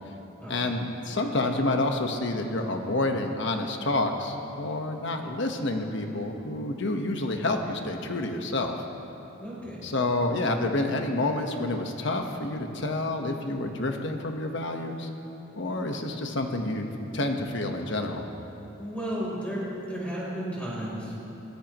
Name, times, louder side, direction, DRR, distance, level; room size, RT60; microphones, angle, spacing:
voice 1, 0.5-8.8 9.8-15.1 15.6-16.9 17.1-18.3, left 2 dB, 65° left, 3 dB, 1.3 m, -28 dB
voice 2, 9.4-9.8 18.8-21.2, equal, 5° left, -7 dB, 3.8 m, -33 dB
22.5 x 17.5 x 3.1 m, 3.0 s
head